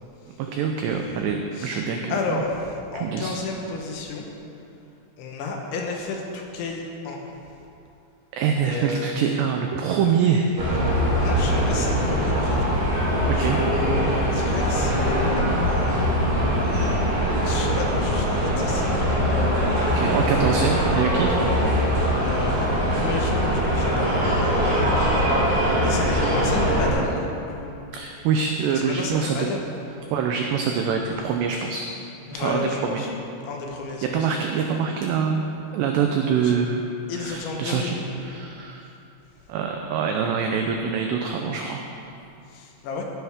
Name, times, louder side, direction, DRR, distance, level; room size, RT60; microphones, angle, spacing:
voice 1, 0.4-2.4 2.9-3.4 8.3-10.5 13.3-13.6 20.0-21.4 27.9-29.6 30.1-31.8 32.3-33.0 34.1-36.9 37.1-38.9 39.5-41.8, right 6 dB, 90° right, 3 dB, 2.4 m, -25 dB
voice 2, 2.1-4.2 5.2-7.2 8.6-9.1 11.1-12.6 13.3-15.8 17.4-19.5 20.2-20.9 22.2-25.3 25.8-27.7 28.7-29.6 32.3-33.1 33.5-34.5 36.4-36.5 37.1-38.0 42.5-43.0, left 3 dB, 75° left, 1 dB, 3.4 m, -32 dB
sound 1, 10.6-26.9, equal, 45° right, 4.3 m, -22 dB
16.5 x 10.5 x 3.6 m, 2.7 s
omnidirectional pair, 5.7 m